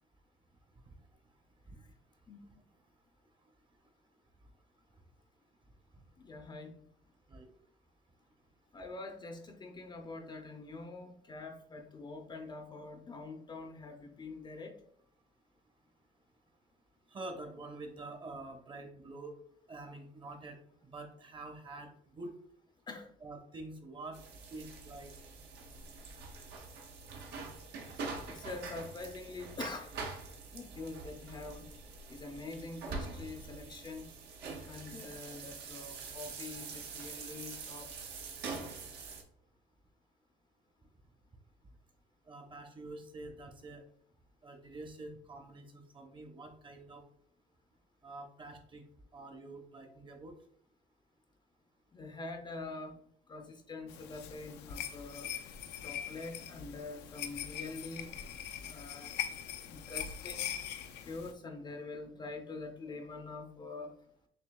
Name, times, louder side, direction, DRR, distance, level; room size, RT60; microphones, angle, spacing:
voice 1, 6.2-6.8 8.7-14.7 22.9-23.1 28.3-29.9 30.5-31.7 32.1-34.1 34.7-37.9 38.5-38.7 51.9-53.0 53.3-55.3 55.8-58.2 58.6-59.1 59.7-60.5 61.1-63.9, left 3 dB, 25° left, 4 dB, 0.5 m, -45 dB
voice 2, 17.1-19.3 19.7-20.6 20.8-22.3 23.2-24.2 24.5-25.1 42.3-43.9 44.4-47.0 48.0-48.8 49.1-50.4, right 2 dB, 30° right, 5 dB, 0.8 m, -47 dB
sound 1, 24.1-39.2, right 4 dB, 75° right, 0.9 m, -45 dB
sound 2, 53.9-61.3, left 9 dB, 85° left, 0.5 m, -42 dB
6.8 x 2.7 x 2.2 m, 0.66 s
cardioid pair, 110°, 17 cm